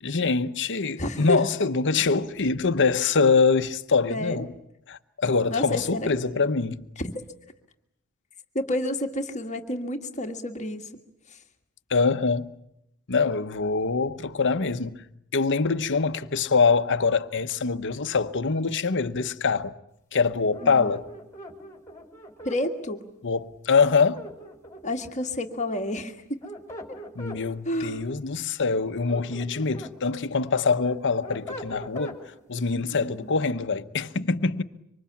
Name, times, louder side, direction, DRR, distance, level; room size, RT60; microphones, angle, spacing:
voice 1, 0.0-4.5 4.9-6.9 11.9-12.5 13.1-15.0 15.3-19.7 20.1-21.0 23.2-24.2 27.2-32.2 32.5-34.6, left 4 dB, 55° left, 1.0 m, -24 dB
voice 2, 1.0-1.4 4.1-4.4 5.5-6.1 7.0-7.1 8.6-10.9 20.6-20.8 22.5-23.1 24.8-26.4 27.7-28.0 32.9-33.3, left 1 dB, 30° left, 1.7 m, -29 dB
sound 1, 20.5-22.6 23.9-25.0 26.2-27.4 28.8-30.0 30.4-32.2, equal, 15° left, 4.1 m, -41 dB
26.0 x 25.0 x 8.6 m
head